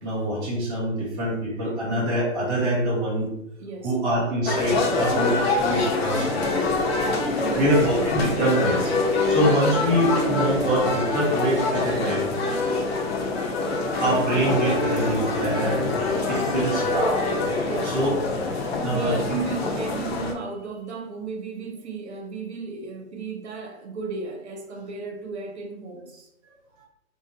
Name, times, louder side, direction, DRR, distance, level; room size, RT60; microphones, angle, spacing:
voice 1, 0.0-3.3 3.8-6.3 7.5-8.9 9.3-12.3 13.8-15.9 16.3-17.2 17.9-18.1 18.8-19.2, right 1 dB, 10° right, 0.5 m, -24 dB
voice 2, 3.6-3.9 5.8-7.9 11.3-11.4 16.2-16.8 17.6-18.0 18.6-26.3, right 4 dB, 55° right, 0.5 m, -35 dB
sound 1, 4.4-20.3, left 3 dB, 50° left, 0.6 m, -25 dB
2.7 x 2.1 x 3.7 m
hypercardioid pair, 145°, 41 cm